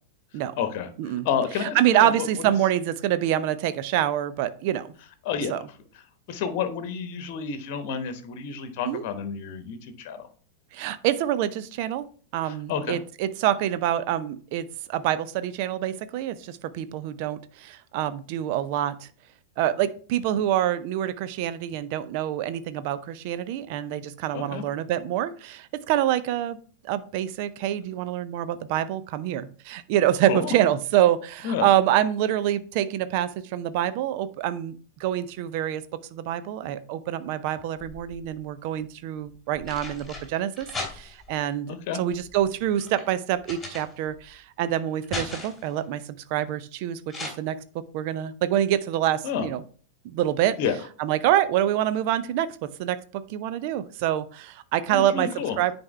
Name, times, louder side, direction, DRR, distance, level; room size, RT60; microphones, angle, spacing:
voice 1, 0.6-0.9 1.2-2.3 5.2-5.6 6.3-10.3 12.5-13.0 24.3-24.6 30.3-30.5 31.4-31.7 41.7-42.0 49.2-49.5 50.6-50.7 54.9-55.6, left 7 dB, 45° left, 8 dB, 1.1 m, -30 dB
voice 2, 1.6-4.9 5.5-5.6 8.8-9.0 10.7-12.0 12.3-19.1 19.6-26.6 26.8-35.8 36.1-46.0 46.3-47.6 47.9-49.6 50.0-50.6 51.0-55.3 55.6-55.7, right 12 dB, 45° right, 13 dB, 0.5 m, -26 dB
sound 1, 37.6-38.4 39.3-41.4 42.1-44.3 44.7-45.7 47.1-47.3, left 3 dB, 10° left, 2.8 m, -38 dB
9.6 x 4.3 x 3.3 m, 0.41 s
figure-of-eight pair, 90°, 0 cm